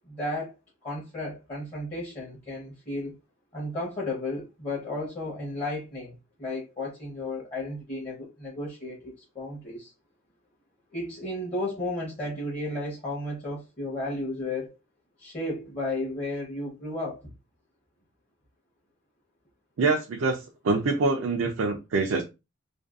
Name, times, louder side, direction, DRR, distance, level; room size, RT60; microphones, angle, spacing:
voice 1, 0.1-0.6 0.8-3.2 3.5-6.1 6.4-9.9 10.9-14.7 15.2-17.3, left 2 dB, 30° left, 0.8 m, -33 dB
voice 2, 19.8-22.2, right 3 dB, 70° right, 0.4 m, -25 dB
2.5 x 2.2 x 2.3 m
head